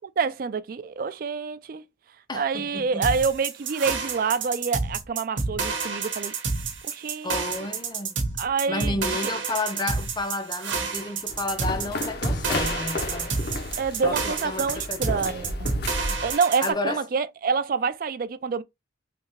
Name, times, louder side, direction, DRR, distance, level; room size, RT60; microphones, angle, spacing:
voice 1, 0.2-1.8 2.3-6.3 6.8-7.4 8.4-9.0 9.2-9.3 13.8-15.7 16.2-18.6, right 5 dB, 50° right, 0.3 m, -27 dB
voice 2, 2.3-3.1 7.2-8.2 8.7-13.4 14.0-16.2 16.6-17.0, left 2 dB, 25° left, 0.5 m, -32 dB
sound 1, 3.0-16.7, right 4 dB, 85° right, 0.9 m, -29 dB
sound 2, 11.3-16.3, left 2 dB, 55° left, 0.7 m, -32 dB
3.4 x 2.7 x 3.0 m
head